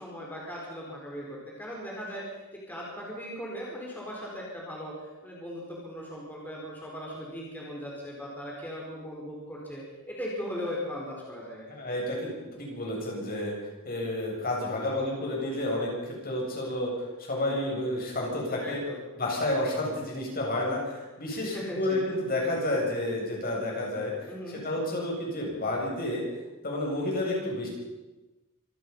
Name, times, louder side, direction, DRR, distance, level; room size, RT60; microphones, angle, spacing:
voice 1, 0.0-2.2 2.7-4.9 5.2-11.7 18.6-19.0 21.3-22.1 24.3-24.6, equal, 10° left, -4 dB, 4.7 m, -38 dB
voice 2, 11.7-13.5 13.8-15.9 16.2-16.9 17.2-18.8 19.2-24.1 24.5-26.2 26.6-27.7, left 1 dB, 45° left, -2 dB, 7.8 m, -30 dB
26.0 x 19.0 x 5.6 m, 1.1 s
head